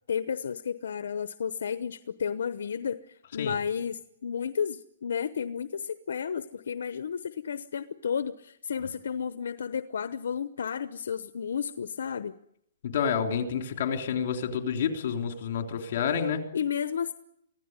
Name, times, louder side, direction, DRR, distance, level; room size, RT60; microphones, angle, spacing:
voice 1, 0.1-12.3 16.5-17.1, left 7 dB, 70° left, 13 dB, 0.9 m, -32 dB
voice 2, 12.8-16.5, left 7 dB, 45° left, 5 dB, 3.5 m, -29 dB
25.0 x 16.0 x 9.7 m, 0.78 s
hypercardioid pair, 170°, 0 cm